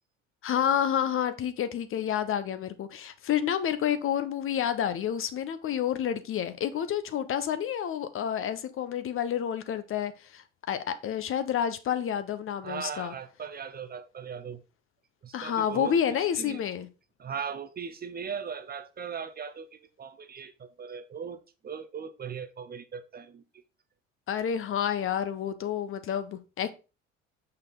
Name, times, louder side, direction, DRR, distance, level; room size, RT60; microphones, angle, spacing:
voice 1, 0.4-13.1 15.3-16.9 24.3-26.7, left 9 dB, 35° left, 0.8 m, -29 dB
voice 2, 12.6-14.6 15.2-16.6 17.2-23.4, right 6 dB, 25° right, 0.8 m, -39 dB
6.7 x 5.8 x 3.7 m
figure-of-eight pair, 60°, 38 cm